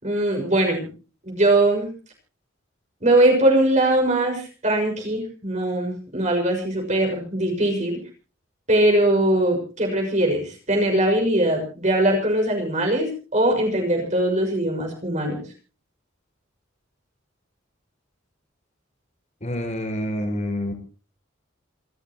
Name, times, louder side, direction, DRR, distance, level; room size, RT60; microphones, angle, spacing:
voice 1, 0.0-0.9 1.3-1.9 3.0-8.0 8.7-15.4, right 1 dB, 35° right, 2 dB, 6.4 m, -21 dB
voice 2, 19.4-20.7, equal, 35° left, 6 dB, 5.4 m, -27 dB
28.0 x 13.5 x 3.0 m, 0.37 s
head